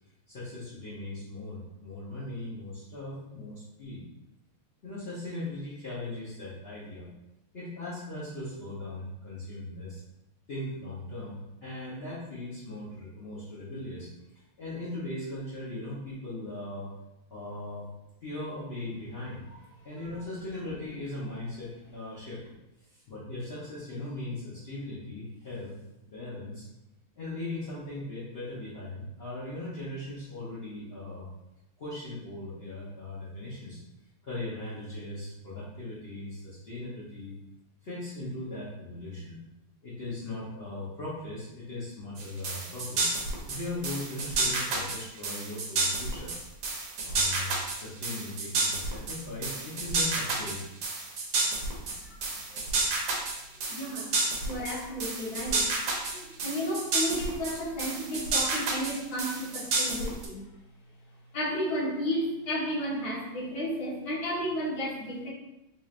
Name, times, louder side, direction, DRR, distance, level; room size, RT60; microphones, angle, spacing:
voice 1, 0.3-4.0 4.8-7.1 7.5-10.0 10.5-14.1 14.3-16.9 17.3-17.9 18.2-19.4 19.8-22.4 22.9-25.8 26.1-26.7 27.2-31.3 31.8-33.8 34.2-37.4 37.8-39.3 39.8-43.2 43.5-46.3 47.0-50.6, left 2 dB, 75° left, -8 dB, 0.5 m, -39 dB
sound 1, 42.2-60.3, right 3 dB, 90° right, 1.7 m, -30 dB
voice 2, 53.7-54.1 54.4-55.7 56.0-60.4 61.3-65.3, equal, 55° left, -6 dB, 1.6 m, -33 dB
4.4 x 3.1 x 2.4 m, 0.94 s
omnidirectional pair, 2.3 m